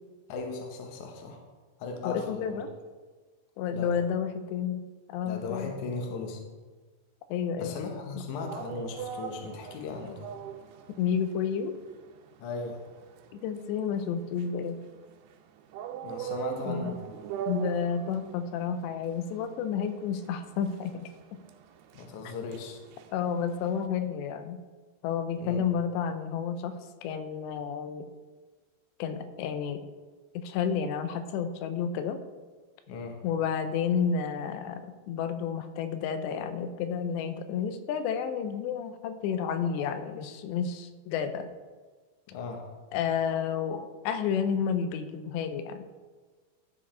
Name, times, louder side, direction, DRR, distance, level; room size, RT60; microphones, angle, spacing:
voice 1, 0.3-1.4 1.8-2.6 3.7-3.9 5.2-6.4 7.5-10.3 12.4-12.8 16.0-17.0 21.9-22.8 25.4-25.6 32.9-33.2 42.3-42.7, left 4 dB, 70° left, 2 dB, 2.0 m, -37 dB
voice 2, 2.1-2.7 3.6-4.8 5.1-5.7 7.3-7.7 10.9-11.8 13.3-14.8 16.7-17.0 17.5-21.4 23.1-24.6 25.0-26.8 27.0-28.1 29.0-29.8 30.3-32.2 33.2-41.5 42.9-45.9, left 7 dB, 85° left, 9 dB, 2.9 m, -31 dB
sound 1, 8.4-23.9, right 9 dB, 80° right, 2.7 m, -42 dB
13.0 x 4.8 x 4.4 m, 1.4 s
omnidirectional pair, 5.0 m